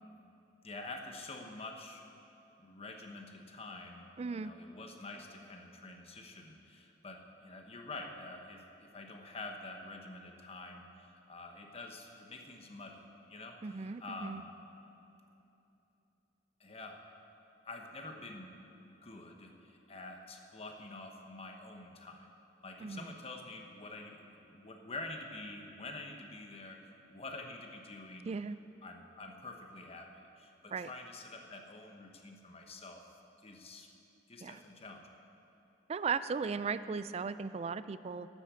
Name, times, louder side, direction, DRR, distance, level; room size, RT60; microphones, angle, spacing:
voice 1, 0.6-2.0 2.6-13.0 13.3-14.5 16.6-17.0 17.6-18.5 18.8-22.3 22.6-28.3 28.8-33.0 33.4-33.9 34.3-35.1, left 2 dB, 35° left, 3 dB, 1.1 m, -47 dB
voice 2, 4.2-4.5 13.6-14.4 22.8-23.1 28.3-28.6 30.7-30.9 34.4-34.6 35.9-38.3, right 5 dB, 35° right, 14 dB, 0.3 m, -37 dB
12.0 x 8.4 x 6.9 m, 2.9 s
head